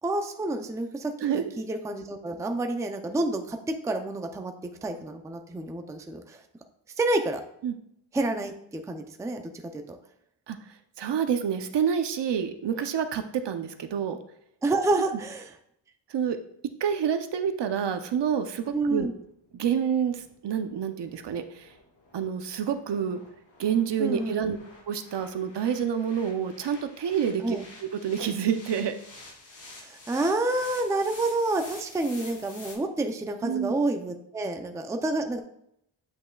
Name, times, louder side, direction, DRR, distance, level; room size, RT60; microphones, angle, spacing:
voice 1, 0.0-4.5 4.8-6.4 7.0-7.4 8.1-9.4 9.7-10.0 14.6-15.5 18.7-19.1 24.0-24.5 27.4-27.6 29.8-35.4, right 2 dB, 5° right, 5 dB, 0.4 m, -29 dB
voice 2, 11.0-14.2 16.1-16.4 16.8-19.1 19.5-21.7 22.1-23.2 23.6-24.6 24.9-27.6 28.0-28.9 33.4-33.7, right 8 dB, 60° right, 8 dB, 0.7 m, -28 dB
sound 1, 17.7-32.8, left 2 dB, 70° left, 2.6 m, -50 dB
8.4 x 5.5 x 2.3 m, 0.74 s
wide cardioid pair, 110°, 48 cm